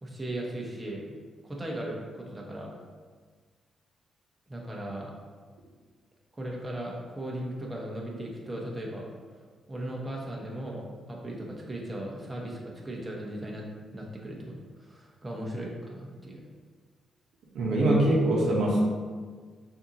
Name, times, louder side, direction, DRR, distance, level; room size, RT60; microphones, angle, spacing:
voice 1, 0.0-1.1 1.4-2.7 4.5-5.1 6.4-9.1 9.7-13.6 13.9-16.4, right 1 dB, 20° right, -2 dB, 0.9 m, -37 dB
voice 2, 17.5-18.8, right 1 dB, 75° right, -3 dB, 1.0 m, -23 dB
6.3 x 2.8 x 2.8 m, 1.5 s
cardioid pair, 70°, 0 cm